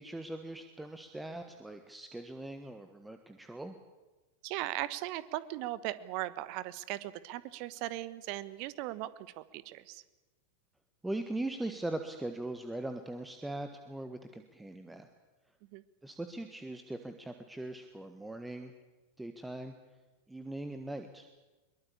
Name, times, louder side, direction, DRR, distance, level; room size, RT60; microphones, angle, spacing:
voice 1, 0.0-3.8 11.0-15.1 16.0-18.7 19.2-19.7 20.3-21.3, right 2 dB, 5° right, 7 dB, 1.5 m, -40 dB
voice 2, 4.4-9.1 9.4-10.0 15.7-15.8, right 16 dB, 45° right, 16 dB, 1.2 m, -38 dB
22.5 x 22.5 x 8.6 m, 1.2 s
figure-of-eight pair, 90°, 0 cm